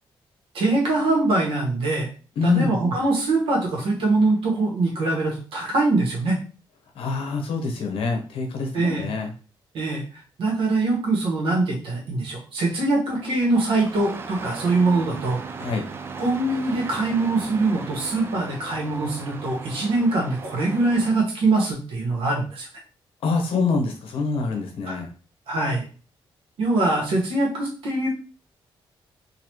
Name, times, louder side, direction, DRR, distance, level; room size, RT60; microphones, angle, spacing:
voice 1, 0.5-2.1 2.4-6.4 8.7-9.1 9.7-10.0 10.4-15.4 16.2-22.7 24.8-25.0 25.5-25.8 26.6-28.1, right 2 dB, 80° right, -2 dB, 1.6 m, -23 dB
voice 2, 2.4-2.9 6.9-9.3 15.6-15.9 23.2-25.1, left 4 dB, 85° left, 3 dB, 1.0 m, -25 dB
Engine starting, 13.1-21.2, right 5 dB, 25° right, 0.3 m, -37 dB
4.0 x 2.8 x 3.1 m, 0.37 s
wide cardioid pair, 170°, 9 cm